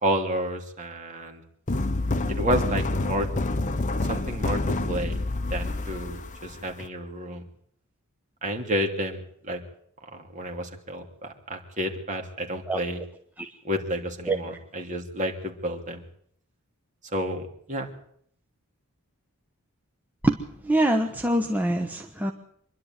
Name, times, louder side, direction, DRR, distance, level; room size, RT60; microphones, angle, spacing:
voice 1, 0.0-1.4 2.3-3.3 4.1-4.6 4.9-5.2 5.5-7.4 8.4-9.6 10.1-13.0 13.6-16.0 17.1-17.9, equal, 35° right, 3 dB, 3.0 m, -30 dB
sound 1, 1.7-6.9, left 2 dB, 35° left, 1.1 m, -27 dB
voice 2, 20.6-22.3, right 1 dB, 10° right, 3 dB, 1.1 m, -24 dB
25.5 x 11.5 x 9.4 m, 0.66 s
head